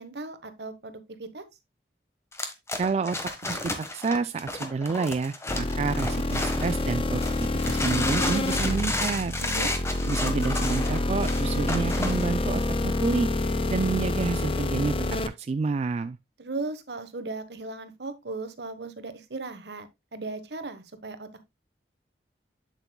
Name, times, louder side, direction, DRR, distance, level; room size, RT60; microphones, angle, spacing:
voice 1, 0.0-1.4 9.4-9.7 16.4-21.4, right 3 dB, 70° right, 1.2 m, -37 dB
sound 1, 2.3-6.8 7.2-12.3, left 2 dB, 15° left, 1.2 m, -32 dB
voice 2, 2.8-3.2 3.5-9.3 10.0-13.3 13.7-14.9 15.3-16.2, right 4 dB, 40° right, 0.3 m, -29 dB
sound 2, 5.5-15.3, left 2 dB, 30° left, 0.7 m, -27 dB
8.2 x 7.7 x 2.2 m
head